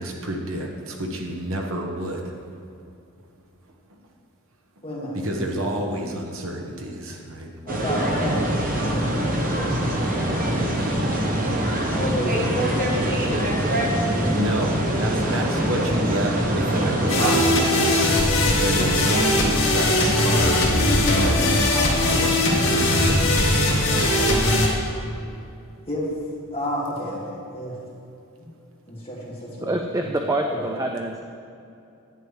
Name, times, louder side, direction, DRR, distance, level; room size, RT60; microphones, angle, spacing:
voice 1, 0.0-2.2 5.2-7.5 14.3-21.5 22.0-23.2, right 1 dB, 65° right, 1 dB, 1.1 m, -29 dB
voice 2, 4.8-5.7 7.6-10.7 11.9-13.9 14.1-14.3 15.9-16.0 21.6-22.1 23.9-24.3 25.9-26.0 26.5-27.7 28.9-29.8 30.1-30.7, left 1 dB, 25° left, -6 dB, 2.1 m, -32 dB
sound 1, 7.7-17.4, right 1 dB, 40° right, 1.1 m, -23 dB
sound 2, 17.1-24.7, left 1 dB, 60° left, 1.8 m, -20 dB
voice 3, 29.6-31.2, right 1 dB, 15° right, 3 dB, 0.4 m, -26 dB
10.5 x 9.1 x 3.3 m, 2.6 s
head